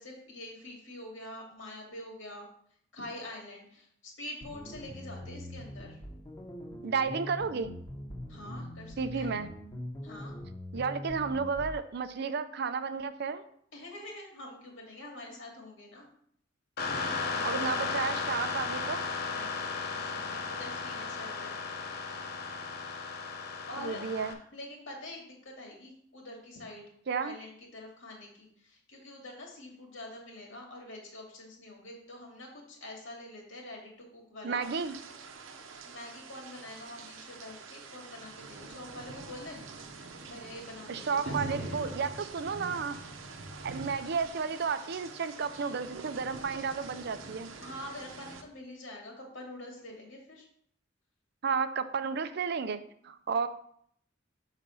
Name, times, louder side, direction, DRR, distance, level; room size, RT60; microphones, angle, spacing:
voice 1, 0.0-2.5 2.9-6.0 8.3-9.3 10.0-10.3 13.7-16.1 17.1-18.0 19.3-21.6 23.3-24.0 24.5-26.9 27.2-34.6 35.8-39.6 40.2-42.0 47.6-50.5, left 1 dB, 80° left, 0 dB, 2.3 m, -46 dB
sound 1, 4.4-11.8, equal, 20° left, 0.9 m, -43 dB
voice 2, 6.8-7.7 9.0-9.5 10.7-13.4 17.4-19.1 23.8-24.4 27.1-27.4 34.4-34.9 40.9-43.0 43.6-47.5 51.4-53.5, right 5 dB, 55° right, 11 dB, 0.5 m, -32 dB
sound 2, 16.8-24.3, left 4 dB, 55° left, 0.9 m, -35 dB
sound 3, 34.6-48.4, right 3 dB, 90° right, 0.8 m, -44 dB
6.7 x 4.1 x 5.4 m, 0.66 s
head